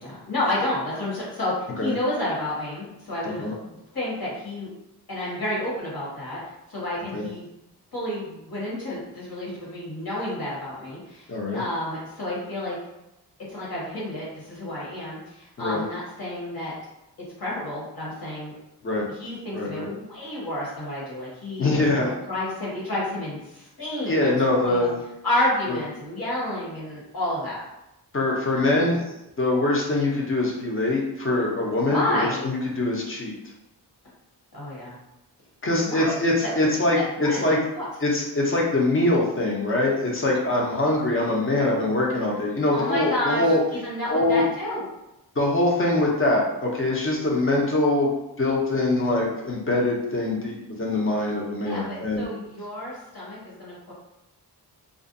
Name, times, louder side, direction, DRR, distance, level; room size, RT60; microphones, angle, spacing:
voice 1, 0.0-4.7 5.1-6.4 6.7-7.5 7.9-12.8 13.5-16.7 17.4-18.5 19.1-21.9 22.3-24.3 24.6-24.9 25.2-27.6 31.8-32.4 34.5-34.9 35.8-36.1 36.4-36.7 36.9-37.9 42.7-44.8 51.6-53.9, left 1 dB, 60° left, -6 dB, 1.2 m, -30 dB
voice 2, 11.3-11.6 15.6-15.8 18.8-19.0 19.5-19.9 21.6-22.1 24.1-25.0 25.7-25.8 28.1-29.0 29.4-33.3 35.6-37.6 38.0-43.6 44.1-44.4 45.4-48.1 48.4-52.2, left 2 dB, 30° left, -2 dB, 0.5 m, -23 dB
2.4 x 2.1 x 2.6 m, 0.90 s
wide cardioid pair, 145°, 41 cm